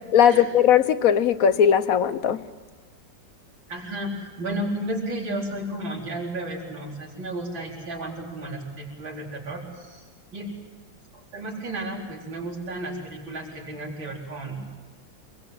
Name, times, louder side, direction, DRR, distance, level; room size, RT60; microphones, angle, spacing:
voice 1, 0.1-2.4, left 8 dB, 55° left, 12 dB, 1.2 m, -18 dB
voice 2, 3.7-10.5 11.1-14.6, right 1 dB, 80° right, -2 dB, 5.0 m, -33 dB
26.5 x 21.0 x 7.9 m, 1.4 s
omnidirectional pair, 2.1 m